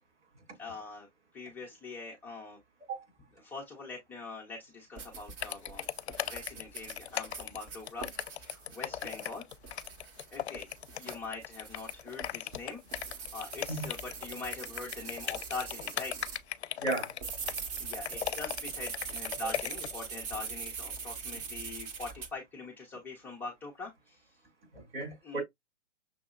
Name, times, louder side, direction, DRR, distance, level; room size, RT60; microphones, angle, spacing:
voice 1, 0.6-1.1 1.3-2.6 3.4-5.9 6.2-9.4 10.3-10.7 11.0-12.8 13.1-16.3 17.7-24.4 25.2-25.4, left 4 dB, 5° left, 0.4 m, -43 dB
sound 1, 5.0-16.4 16.9-22.3, right 5 dB, 30° right, 0.8 m, -42 dB
sound 2, 5.4-20.0, left 11 dB, 65° left, 0.5 m, -37 dB
voice 2, 16.8-17.1 19.4-19.5 24.7-25.4, right 3 dB, 70° right, 2.7 m, -34 dB
6.2 x 2.7 x 2.3 m
figure-of-eight pair, 120°, 36 cm